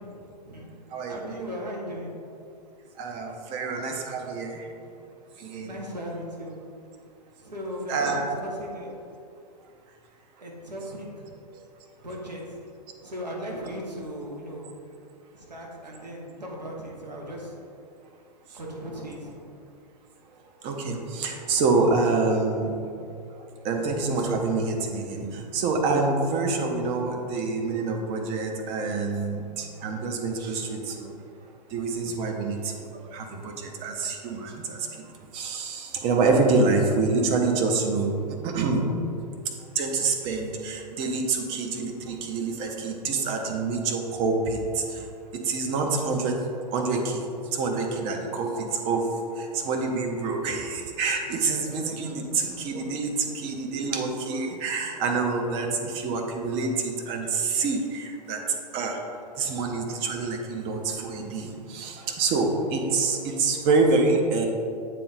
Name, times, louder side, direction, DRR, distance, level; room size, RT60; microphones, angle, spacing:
voice 1, 0.0-0.7 1.1-2.1 5.6-6.6 7.4-9.0 10.4-11.6 12.0-12.6 13.0-14.7 15.3-17.6 18.5-19.4, equal, 80° right, -2 dB, 1.4 m, -37 dB
voice 2, 0.9-1.3 3.0-4.7 5.4-5.8 7.9-8.2 18.6-18.8 20.6-22.7 23.3-31.1 31.7-34.9 35.3-38.1 38.4-38.8 39.7-45.0 45.4-46.4 46.7-47.2 47.5-49.1 49.4-58.4 58.7-59.0 59.4-64.5, right 3 dB, 25° right, 2 dB, 0.7 m, -27 dB
7.6 x 3.8 x 4.0 m, 2.5 s
figure-of-eight pair, 110°, 21 cm